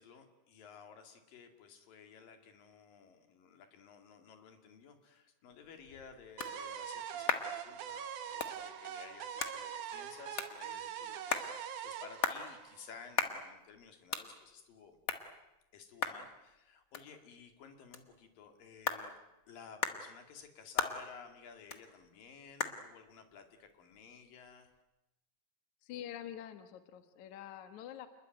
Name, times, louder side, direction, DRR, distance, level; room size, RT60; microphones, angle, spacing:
voice 1, 0.0-15.0 15.7-19.2 19.5-24.7, left 6 dB, 90° left, 6 dB, 4.2 m, -55 dB
sound 1, 5.5-24.8, left 4 dB, 35° left, 1.4 m, -42 dB
sound 2, 6.4-13.3, right 9 dB, 70° right, 2.8 m, -43 dB
voice 2, 25.8-28.1, left 10 dB, 65° left, 9 dB, 2.6 m, -46 dB
28.5 x 21.0 x 9.2 m, 0.94 s
omnidirectional pair, 3.9 m